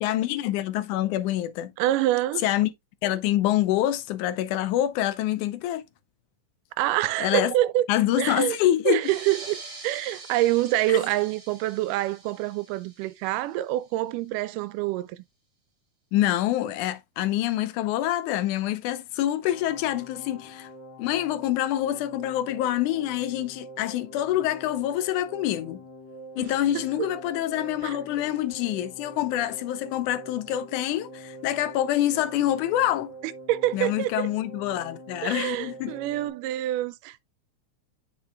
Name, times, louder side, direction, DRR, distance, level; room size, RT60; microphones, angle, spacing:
voice 1, 0.0-1.7 2.4-2.7 3.0-5.8 7.2-7.5 7.9-9.0 10.9-11.0 16.1-20.7 21.0-25.8 26.4-33.1 33.7-35.9, left 13 dB, 80° left, 2.0 m, -26 dB
voice 2, 1.8-2.4 6.8-7.9 8.2-8.6 8.9-15.2 26.4-27.1 27.8-28.0 33.5-34.3 35.2-37.2, right 14 dB, 90° right, 2.2 m, -26 dB
sound 1, 8.9-14.0, right 3 dB, 40° right, 3.0 m, -44 dB
sound 2, 19.5-36.3, right 1 dB, 50° left, 2.5 m, -45 dB
9.7 x 5.5 x 2.2 m
omnidirectional pair, 3.7 m